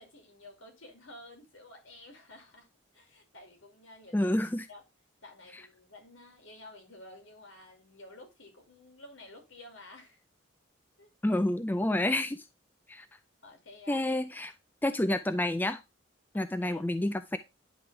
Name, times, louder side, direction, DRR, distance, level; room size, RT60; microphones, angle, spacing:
voice 1, 0.0-2.7 2.9-4.3 4.7-4.8 5.2-10.2 11.0-11.4 13.4-14.1 14.8-15.0 16.3-16.8, left 2 dB, 80° left, 2.5 m, -52 dB
voice 2, 4.1-4.6 11.2-12.4 12.9-13.1 13.9-14.5 14.8-15.8 16.3-17.4, left 1 dB, 10° left, 0.3 m, -29 dB
10.0 x 3.5 x 3.2 m
head